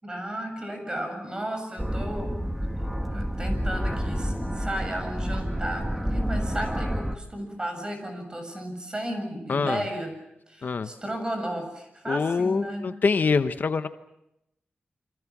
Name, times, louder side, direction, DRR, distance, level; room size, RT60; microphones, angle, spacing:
voice 1, 0.0-2.3 3.1-10.2 10.5-12.9, right 1 dB, 20° right, 6 dB, 7.3 m, -34 dB
sound 1, 1.8-7.2, equal, 5° right, 1.5 m, -29 dB
voice 2, 9.5-9.8 10.6-10.9 12.1-13.9, left 4 dB, 60° left, 10 dB, 1.0 m, -25 dB
29.5 x 26.0 x 6.1 m, 0.82 s
wide cardioid pair, 110°, 4 cm